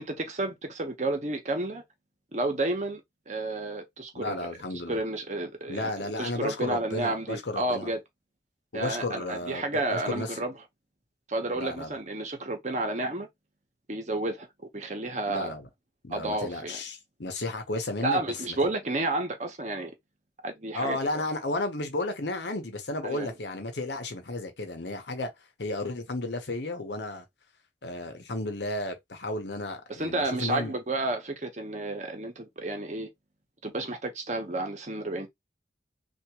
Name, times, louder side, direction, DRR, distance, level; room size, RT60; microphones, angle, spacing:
voice 1, 0.0-1.8 2.3-3.0 3.3-4.4 4.9-5.9 6.2-8.0 8.7-10.5 11.3-13.3 13.9-14.5 14.7-15.5 16.1-16.8 18.0-19.9 20.4-21.2 23.0-23.3 29.9-33.1 33.6-35.3, right 2 dB, 40° right, 1.0 m, -31 dB
voice 2, 4.1-5.0 5.7-7.9 8.7-10.4 11.5-12.0 15.3-15.7 16.0-18.6 20.7-25.3 25.6-27.2 27.8-30.7, left 2 dB, 75° left, 1.0 m, -33 dB
3.5 x 2.6 x 2.9 m
head